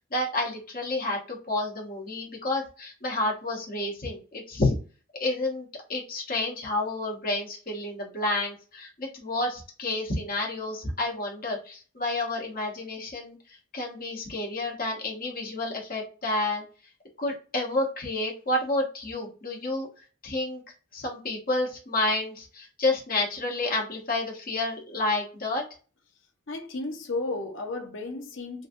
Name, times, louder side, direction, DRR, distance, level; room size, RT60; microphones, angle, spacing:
voice 1, 0.1-4.7 5.2-13.4 13.7-16.6 17.2-19.9 20.2-20.6 20.9-25.6, left 2 dB, 45° left, 1.2 m, -30 dB
voice 2, 26.5-28.7, left 2 dB, 65° left, 0.8 m, -33 dB
3.9 x 2.3 x 2.6 m
head